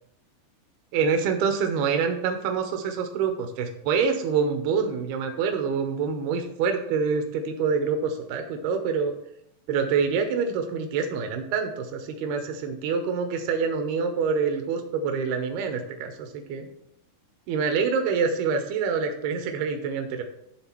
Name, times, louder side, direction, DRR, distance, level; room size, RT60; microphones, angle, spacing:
voice 1, 0.9-9.1 9.7-16.7 17.5-20.2, right 5 dB, 80° right, 5 dB, 2.8 m, -26 dB
11.0 x 3.8 x 5.8 m, 0.77 s
omnidirectional pair, 4.5 m